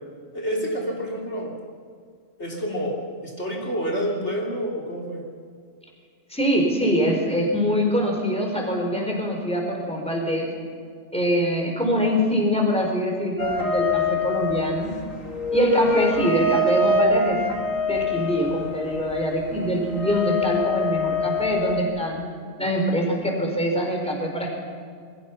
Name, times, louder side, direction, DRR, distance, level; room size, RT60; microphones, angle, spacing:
voice 1, 0.3-1.6 2.4-3.0 3.2-5.2, equal, 60° left, -2 dB, 3.6 m, -28 dB
voice 2, 6.3-10.5 11.1-14.9 15.5-17.4 17.8-22.2 22.6-24.5, equal, 5° left, 1 dB, 4.3 m, -24 dB
sound 1, 13.4-21.8, left 2 dB, 80° left, 2.5 m, -25 dB
27.0 x 21.5 x 5.9 m, 2.1 s
omnidirectional pair, 1.3 m